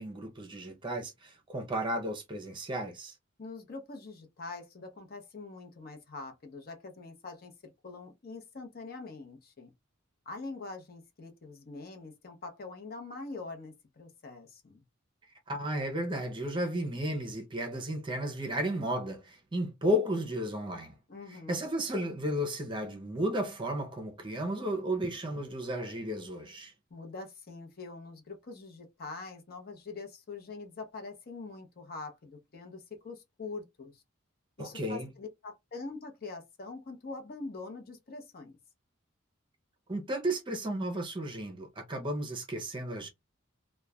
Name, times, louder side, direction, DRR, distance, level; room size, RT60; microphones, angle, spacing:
voice 1, 0.0-3.1 15.5-20.9 21.5-26.7 34.6-35.1 39.9-43.1, equal, 25° right, 0.6 m, -33 dB
voice 2, 3.4-9.7 10.3-14.8 21.1-21.7 26.9-34.0 34.6-38.6, left 3 dB, 50° left, 0.7 m, -44 dB
3.0 x 2.2 x 2.3 m
head